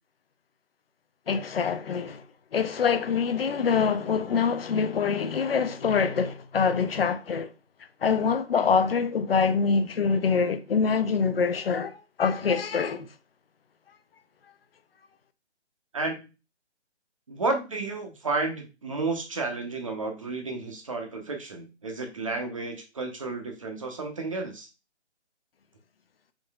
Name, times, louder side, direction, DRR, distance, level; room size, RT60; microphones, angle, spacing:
voice 1, 1.3-2.3 2.5-7.5 8.0-13.1, left 5 dB, 55° left, 0.5 m, -25 dB
voice 2, 17.3-24.7, right 3 dB, 30° right, 0.6 m, -32 dB
3.8 x 3.8 x 2.2 m
figure-of-eight pair, 160°, 35 cm